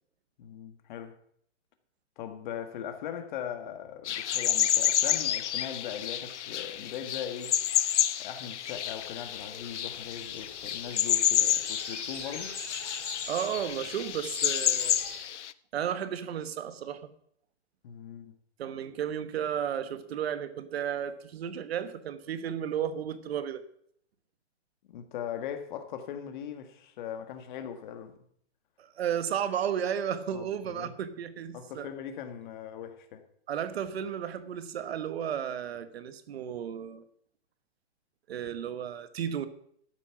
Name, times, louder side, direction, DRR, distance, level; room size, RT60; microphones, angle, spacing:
voice 1, 0.4-1.2 2.2-7.6 8.2-12.6 17.8-18.3 24.9-28.2 30.3-30.9 31.5-33.2, left 9 dB, 45° left, 1.7 m, -40 dB
sound 1, 4.0-15.5, left 10 dB, 80° left, 0.7 m, -29 dB
sound 2, 8.6-15.2, left 3 dB, 15° left, 4.3 m, -42 dB
voice 2, 13.3-15.0 15.7-17.0 18.6-23.6 28.8-31.9 33.5-37.0 38.3-39.5, right 9 dB, 60° right, 1.3 m, -33 dB
13.0 x 8.3 x 5.9 m
hypercardioid pair, 150°, 35 cm